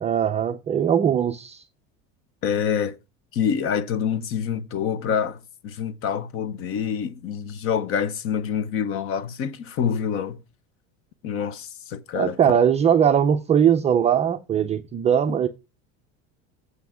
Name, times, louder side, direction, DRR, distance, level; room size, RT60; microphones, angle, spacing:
voice 1, 0.0-1.6 12.1-15.5, right 8 dB, 20° right, 0.5 m, -20 dB
voice 2, 2.4-3.0 3.3-10.4 11.2-12.4, left 7 dB, 40° left, 0.9 m, -26 dB
7.9 x 5.9 x 6.1 m
cardioid pair, 155°, 32 cm